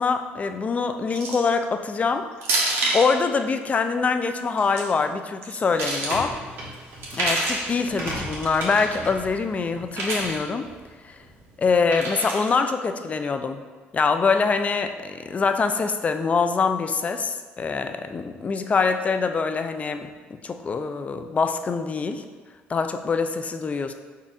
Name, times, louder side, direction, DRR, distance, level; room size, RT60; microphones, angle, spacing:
voice 1, 0.0-2.3 2.9-6.4 7.1-10.7 11.0-11.1 11.6-13.6 13.9-20.1 20.4-22.2 22.7-23.9, left 4 dB, 35° left, 8 dB, 0.4 m, -24 dB
sound 1, 1.1-1.5 2.4-3.1 4.4-4.8 5.4-6.2 7.0-7.7 8.6-9.0 9.9-10.4 11.9-12.5, right 2 dB, 70° right, 1.1 m, -27 dB
sound 2, 5.7-11.9, right 1 dB, 55° right, 1.4 m, -38 dB
4.1 x 2.5 x 4.6 m, 1.4 s
supercardioid pair, 85°, 4 cm